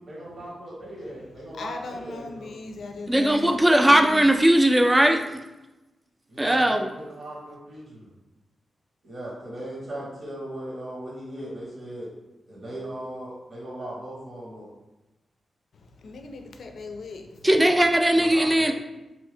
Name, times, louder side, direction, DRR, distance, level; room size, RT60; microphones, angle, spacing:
voice 1, 0.0-2.5 6.3-8.1 9.0-12.1 12.5-14.7 18.1-18.7, right 1 dB, 65° right, -6 dB, 1.1 m, -38 dB
voice 2, 1.6-4.3 16.0-17.7, left 3 dB, 70° left, 4 dB, 0.4 m, -38 dB
voice 3, 3.1-5.4 6.4-6.9 17.4-18.7, right 1 dB, 15° right, 5 dB, 0.4 m, -19 dB
2.6 x 2.6 x 3.4 m, 1.0 s
cardioid pair, 50°, 0 cm